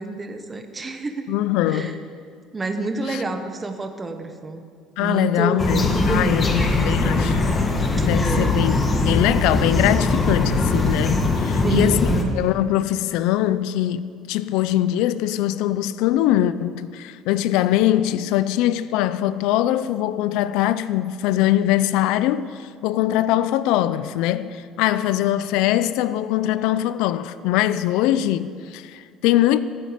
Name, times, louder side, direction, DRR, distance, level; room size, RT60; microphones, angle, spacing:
voice 1, 0.0-1.3 1.7-1.9 2.5-4.6 5.0-7.3 8.0-8.7 11.5-12.3, right 3 dB, 20° right, 1.2 m, -28 dB
voice 2, 1.3-1.9 3.1-3.2 5.0-7.4 8.0-8.8 9.0-12.1 12.3-29.6, left 13 dB, 80° left, 0.5 m, -22 dB
sound 1, 5.6-12.2, left 3 dB, 25° left, 1.6 m, -21 dB
14.5 x 13.5 x 5.1 m
cardioid pair, 145°, 0 cm